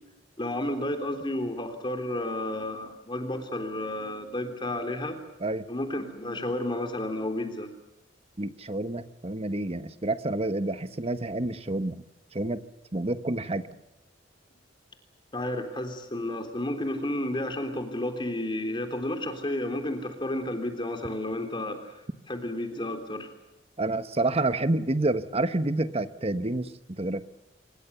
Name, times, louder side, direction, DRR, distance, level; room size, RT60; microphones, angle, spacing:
voice 1, 0.4-5.2 5.7-7.7 15.3-21.9 22.3-23.3, left 1 dB, 25° left, 6 dB, 3.5 m, -31 dB
voice 2, 8.4-12.0 12.3-12.6 12.9-13.7 23.8-27.2, right 2 dB, 35° right, 11 dB, 1.2 m, -28 dB
26.5 x 22.5 x 6.9 m, 0.94 s
head